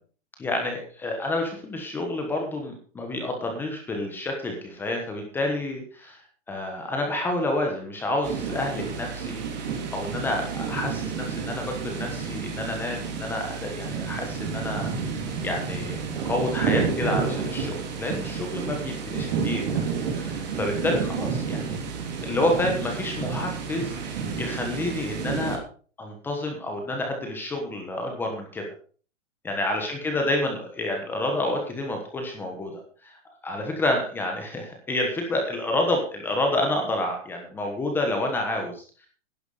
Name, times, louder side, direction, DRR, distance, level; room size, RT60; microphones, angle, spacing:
voice 1, 0.4-14.9 15.4-19.8 20.1-21.9 22.2-25.6 26.0-28.7 29.4-39.1, left 1 dB, 5° left, 2 dB, 1.2 m, -29 dB
sound 1, 8.2-25.6, right 6 dB, 35° right, 3.1 m, -30 dB
11.5 x 10.5 x 4.9 m, 0.41 s
hypercardioid pair, 175°, 36 cm